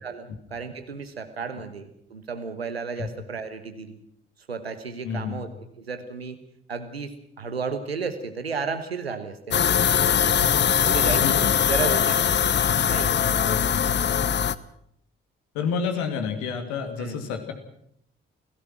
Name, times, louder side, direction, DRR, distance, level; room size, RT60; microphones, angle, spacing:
voice 1, 0.0-4.0 4.5-5.5 5.8-6.4 6.7-9.6 10.8-11.2 11.6-12.3 12.9-13.1 17.0-17.3, right 5 dB, 85° right, 9 dB, 1.4 m, -33 dB
voice 2, 5.0-5.4 10.4-10.5 11.0-11.6 13.4-14.1 15.5-17.5, left 6 dB, 65° left, 6 dB, 2.7 m, -30 dB
sound 1, 9.5-14.5, left 8 dB, 35° left, 0.9 m, -21 dB
28.0 x 17.0 x 6.1 m, 0.71 s
figure-of-eight pair, 40°, 30 cm